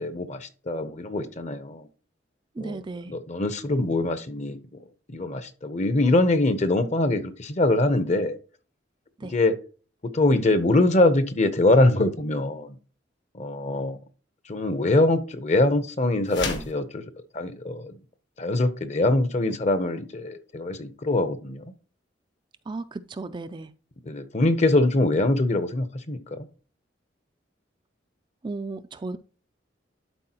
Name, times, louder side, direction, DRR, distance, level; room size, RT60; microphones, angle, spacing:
voice 1, 0.0-1.9 2.6-2.8 3.1-4.6 5.1-8.4 9.3-9.5 10.0-12.7 13.3-14.0 14.5-17.0 17.3-17.9 18.4-21.6 24.1-26.5, left 2 dB, 40° left, 11 dB, 0.8 m, -23 dB
voice 2, 2.6-3.1 9.2-9.3 22.7-23.7 28.4-29.2, right 3 dB, 25° right, 10 dB, 0.3 m, -35 dB
sound 1, 16.3-16.8, left 3 dB, 65° left, 1.4 m, -31 dB
11.5 x 4.2 x 2.9 m, 0.37 s
head